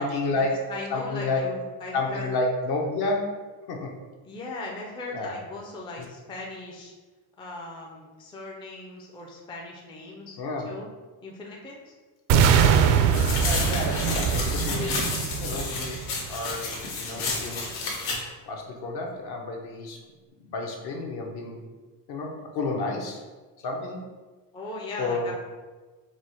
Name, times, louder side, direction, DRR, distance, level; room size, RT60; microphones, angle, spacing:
voice 1, 0.0-0.6 0.9-1.4 1.9-3.2 3.7-3.9 5.1-5.4 6.0-6.1 10.4-10.7 13.4-16.0 16.3-17.7 18.5-20.0 20.4-21.6 22.1-23.2 23.6-24.1 25.0-25.3, left 3 dB, 60° left, 1 dB, 0.8 m, -30 dB
voice 2, 0.7-2.3 4.2-6.9 7.4-10.4 10.7-10.9 11.2-11.9 24.5-25.3, left 2 dB, 10° left, -2 dB, 0.3 m, -38 dB
sound 1, 12.3-16.3, right 7 dB, 75° right, 0.5 m, -22 dB
sound 2, 13.1-18.2, left 3 dB, 85° left, 1.2 m, -31 dB
4.7 x 2.0 x 4.2 m, 1.3 s
cardioid pair, 140°, 44 cm